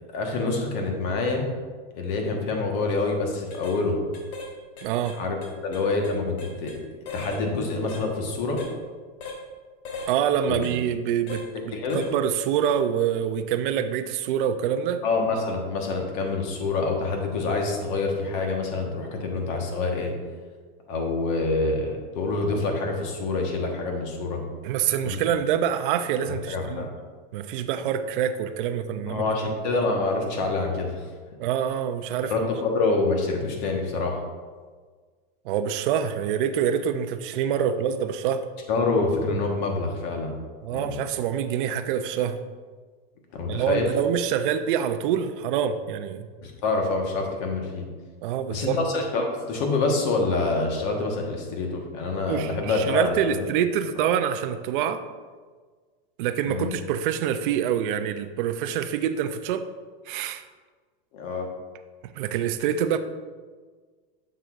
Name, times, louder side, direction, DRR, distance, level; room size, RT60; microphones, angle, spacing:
voice 1, 0.1-1.4 1.9-4.0 5.2-5.4 5.6-6.9 7.1-8.6 10.5-10.7 11.5-12.0 15.0-20.1 20.9-24.4 25.0-25.2 26.5-26.9 29.1-31.0 32.3-34.1 38.7-40.3 40.7-41.0 43.3-43.9 46.4-47.9 48.5-53.4 56.5-56.7 61.1-61.5, left 3 dB, 50° left, 2 dB, 1.3 m, -26 dB
sound 1, 2.9-3.0 3.5-3.8 4.1-4.5 4.8-6.8 7.0-7.4 7.9-8.1 8.6-8.7 9.2-9.4 9.8-10.1 10.6-10.8 11.3-11.5 11.9-12.1 12.5-12.7, left 3 dB, 85° left, 1.3 m, -39 dB
voice 2, 4.8-5.2 10.1-11.4 11.9-15.0 24.6-26.9 27.3-29.5 31.4-32.3 35.5-38.5 40.6-42.4 43.5-46.3 48.2-48.8 52.3-55.0 56.2-59.6 60.1-60.4 62.0-63.0, right 9 dB, 60° right, 9 dB, 0.5 m, -26 dB
7.4 x 6.7 x 2.5 m, 1.5 s
supercardioid pair, 150°, 30 cm